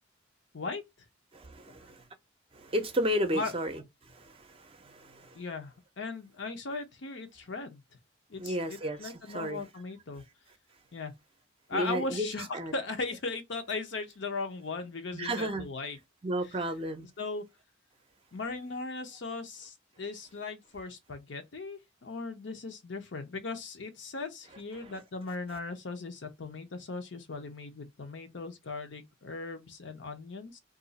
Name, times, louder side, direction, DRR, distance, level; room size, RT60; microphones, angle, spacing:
voice 1, 1.3-2.0 2.5-3.8 4.1-5.4 8.4-9.6 11.7-12.3 12.5-12.7 15.1-15.7 16.2-17.1, equal, 30° right, 0.5 m, -33 dB
voice 2, 5.3-7.8 8.3-10.2 10.9-11.1 11.7-16.0 16.4-16.6 17.0-17.4 18.3-30.6, left 3 dB, 70° left, 0.7 m, -38 dB
2.5 x 2.4 x 3.9 m
head